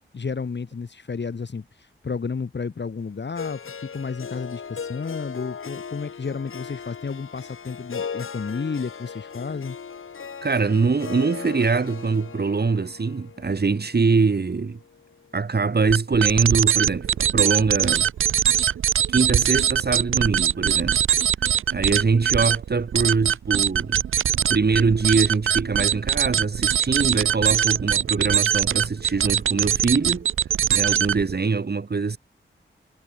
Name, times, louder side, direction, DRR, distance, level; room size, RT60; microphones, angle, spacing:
voice 1, 0.1-9.8, left 5 dB, 60° left, 2.4 m, -32 dB
Harp, 3.3-15.5, left 6 dB, 85° left, 6.6 m, -38 dB
voice 2, 10.4-14.8 15.3-18.1 19.1-21.0 21.7-24.0 24.5-30.3 30.7-32.2, right 4 dB, 50° right, 2.3 m, -23 dB
sound 1, 15.9-31.4, right 9 dB, 80° right, 0.6 m, -22 dB
cardioid pair, 60°, 21 cm